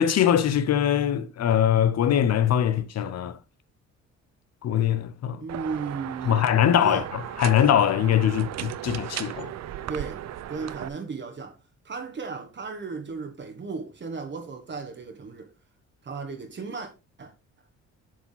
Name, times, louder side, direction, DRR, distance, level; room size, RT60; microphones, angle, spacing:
voice 1, 0.0-3.4 4.6-5.4 6.3-7.0 7.4-9.5, left 10 dB, 60° left, 0.7 m, -22 dB
voice 2, 5.4-6.5 6.8-7.1 9.9-11.6 11.8-15.5 16.0-16.9 17.2-17.3, right 4 dB, 40° right, 1.4 m, -35 dB
sound 1, 5.5-10.9, right 11 dB, 60° right, 0.6 m, -36 dB
7.5 x 4.7 x 3.9 m
cardioid pair, 90°, 30 cm